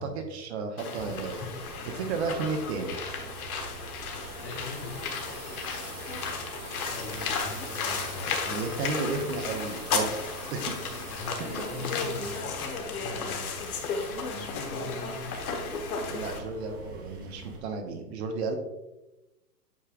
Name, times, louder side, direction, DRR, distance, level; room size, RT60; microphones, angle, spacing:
voice 1, 0.0-3.0 8.5-10.2 10.5-10.7 11.5-11.6 16.1-18.6, right 4 dB, 40° right, 4 dB, 1.0 m, -33 dB
sound 1, 0.8-16.4, left 5 dB, 55° left, 1.4 m, -34 dB
sound 2, 1.0-17.6, right 3 dB, 15° right, 0.4 m, -46 dB
voice 2, 1.8-2.1 4.1-4.9 6.7-8.6 11.1-13.5 14.2-15.3, left 3 dB, 25° left, 1 dB, 1.1 m, -41 dB
sound 3, 2.7-14.3, right 4 dB, 85° right, 2.2 m, -48 dB
8.6 x 5.4 x 2.4 m, 0.98 s
hypercardioid pair, 125°, 50 cm